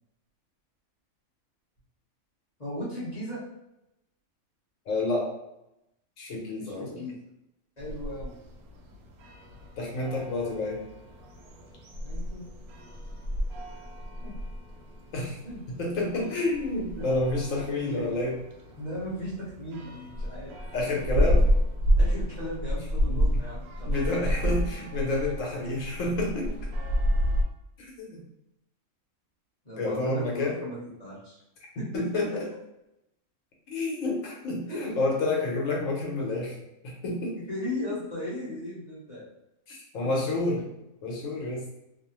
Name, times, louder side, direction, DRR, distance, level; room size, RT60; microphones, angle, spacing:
voice 1, 2.6-3.4 6.6-7.1 7.8-8.3 10.2-10.3 12.0-12.5 14.2-14.4 15.4-15.6 17.0-17.1 17.8-18.0 18.8-20.5 22.0-24.4 29.6-31.4 31.8-32.0 34.7-34.8 37.3-39.3 40.0-40.5, left 1 dB, 35° left, -9 dB, 0.9 m, -37 dB
voice 2, 4.9-5.3 6.2-7.0 9.8-10.8 15.1-15.4 15.7-18.4 20.7-21.5 23.0-23.4 23.9-26.5 27.8-28.2 29.8-30.6 31.9-32.3 33.7-36.6 36.8-37.4 39.7-40.7 41.0-41.7, left 2 dB, 65° left, -2 dB, 1.1 m, -29 dB
sound 1, 7.8-27.4, equal, 85° right, 1.0 m, -30 dB
2.8 x 2.0 x 2.8 m, 0.89 s
omnidirectional pair, 1.5 m